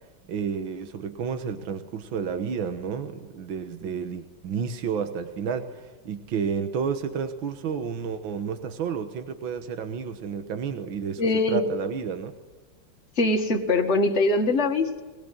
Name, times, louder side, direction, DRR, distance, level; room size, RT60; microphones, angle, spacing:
voice 1, 0.3-12.3, right 6 dB, 80° right, 8 dB, 2.0 m, -31 dB
voice 2, 11.2-11.6 13.2-15.0, left 2 dB, 35° left, 2 dB, 2.1 m, -22 dB
21.5 x 21.5 x 9.3 m, 1.3 s
omnidirectional pair, 2.1 m